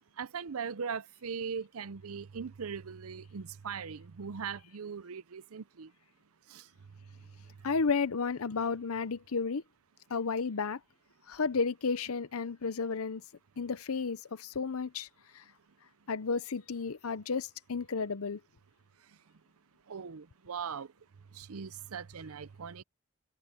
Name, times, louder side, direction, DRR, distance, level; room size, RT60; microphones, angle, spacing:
voice 1, 0.2-5.9 6.5-6.6 19.9-20.9 21.4-22.8, right 6 dB, 85° right, 0.6 m, -40 dB
voice 2, 7.6-9.6 10.1-10.8 11.3-13.2 13.6-15.1 15.3-15.4 16.1-18.4, left 5 dB, 85° left, 0.7 m, -32 dB
head